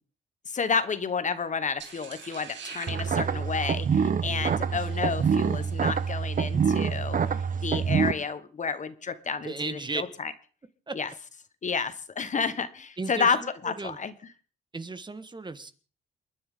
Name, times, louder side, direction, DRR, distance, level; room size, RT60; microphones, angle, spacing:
voice 1, 0.5-10.3 10.9-11.1 11.6-13.4 13.6-14.1, left 5 dB, 40° left, 12 dB, 1.2 m, -30 dB
sound 1, 1.8-6.1, right 7 dB, 65° right, 2.6 m, -46 dB
sound 2, 2.9-8.1, right 6 dB, 45° right, 1.0 m, -26 dB
voice 2, 9.4-10.0 10.9-11.0 13.0-14.0 14.7-15.7, right 3 dB, 20° right, 11 dB, 1.4 m, -35 dB
28.5 x 9.9 x 3.7 m, 0.40 s
cardioid pair, 90°, 20 cm